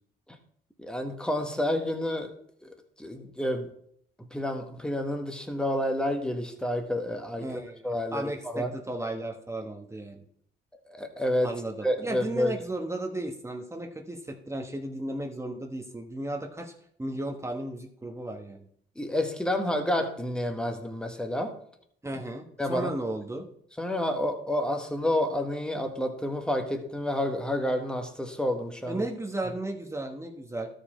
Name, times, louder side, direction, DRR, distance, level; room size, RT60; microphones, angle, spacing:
voice 1, 0.8-2.3 2.6-3.7 4.3-7.5 7.8-8.7 10.9-11.5 11.8-12.6 19.0-21.6 22.1-22.2 22.6-22.9 23.8-29.0, left 1 dB, 5° left, 5 dB, 1.4 m, -29 dB
voice 2, 7.4-10.2 11.4-16.7 17.0-18.6 22.0-23.5 28.9-30.7, right 1 dB, 15° right, 2 dB, 1.2 m, -35 dB
13.0 x 5.1 x 4.3 m, 0.66 s
cardioid pair, 90°, 20 cm